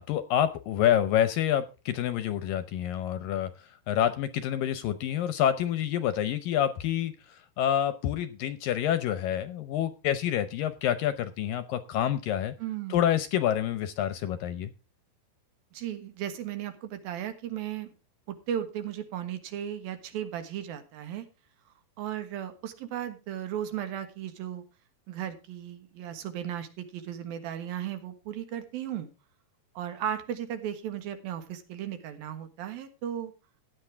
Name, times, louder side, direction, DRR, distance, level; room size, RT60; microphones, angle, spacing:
voice 1, 0.0-12.5 12.9-14.7, left 10 dB, 75° left, 12 dB, 2.2 m, -28 dB
voice 2, 12.6-13.0 15.7-17.9 18.5-21.3 22.0-24.6 25.1-29.1 29.8-33.3, right 10 dB, 70° right, 9 dB, 3.1 m, -35 dB
15.5 x 10.5 x 3.4 m, 0.30 s
omnidirectional pair, 4.6 m